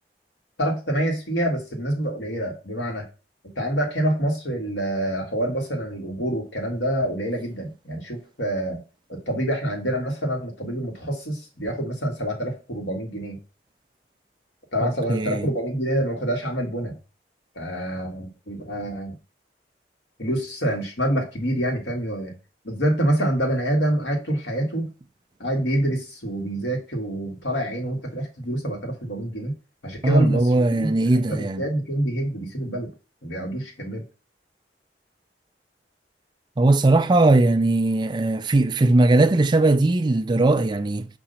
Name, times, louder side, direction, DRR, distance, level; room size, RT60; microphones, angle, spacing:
voice 1, 0.6-3.1 3.6-8.8 9.1-13.4 14.7-16.9 17.6-19.1 20.2-22.3 22.6-24.9 25.4-29.5 29.8-30.9 31.3-32.9 33.2-34.0, right 1 dB, 90° left, 2.0 m, -26 dB
voice 2, 15.1-15.5 30.0-31.6 36.6-41.1, right 2 dB, 25° right, 0.4 m, -19 dB
6.1 x 2.9 x 5.5 m
head